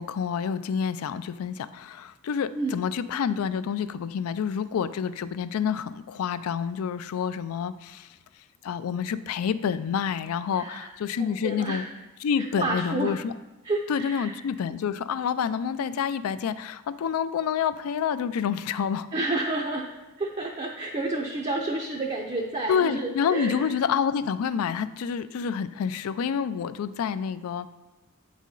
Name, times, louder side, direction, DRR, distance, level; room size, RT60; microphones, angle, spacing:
voice 1, 0.0-8.1 8.6-11.8 12.2-13.3 13.9-19.1 22.7-27.7, left 7 dB, 80° left, 14 dB, 0.3 m, -28 dB
voice 2, 10.5-10.9 11.2-11.9 12.4-13.2 13.6-14.4 19.1-19.9 20.2-23.7, right 2 dB, 30° right, 0 dB, 0.5 m, -30 dB
8.3 x 4.2 x 3.8 m, 1.1 s
head